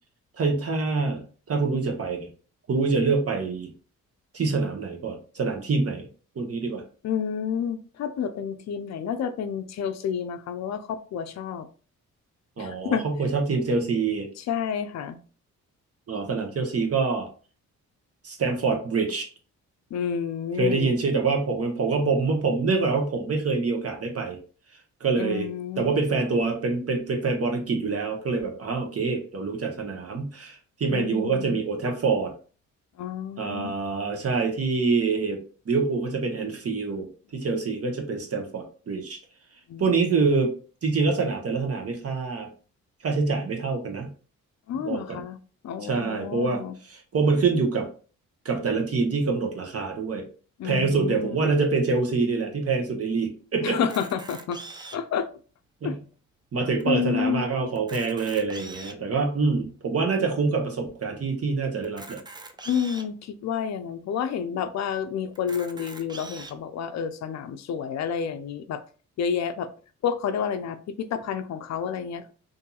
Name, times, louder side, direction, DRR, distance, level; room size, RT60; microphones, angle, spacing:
voice 1, 0.4-2.3 2.7-3.7 4.3-6.0 6.4-6.8 12.6-14.3 16.1-17.3 18.2-19.3 20.6-24.4 25.0-25.5 25.8-32.3 33.4-35.4 35.7-39.2 39.8-40.5 40.8-42.5 43.0-44.1 44.7-45.2 45.8-47.9 48.4-50.3 50.6-53.8 55.8-56.0 56.5-62.2, right 4 dB, 45° right, 3 dB, 0.9 m, -26 dB
voice 2, 7.0-11.7 12.6-13.0 14.4-15.2 19.9-21.0 25.2-25.9 30.9-31.6 33.0-33.7 39.7-39.9 44.7-45.4 45.6-46.7 50.6-51.5 53.6-54.6 54.9-55.3 55.8-55.9 56.8-57.5 62.7-68.8 69.2-69.7 70.0-72.3, left 7 dB, 50° left, 10 dB, 0.5 m, -30 dB
Camera, 53.8-55.2 55.8-55.9 56.1-56.3 56.8-56.9 57.7-59.1 59.7-59.8 61.8-63.1 63.8-63.9 64.2-64.3 65.3-66.5, right 2 dB, 15° right, 0.4 m, -42 dB
2.7 x 2.7 x 2.3 m, 0.38 s
supercardioid pair, 60°, 35 cm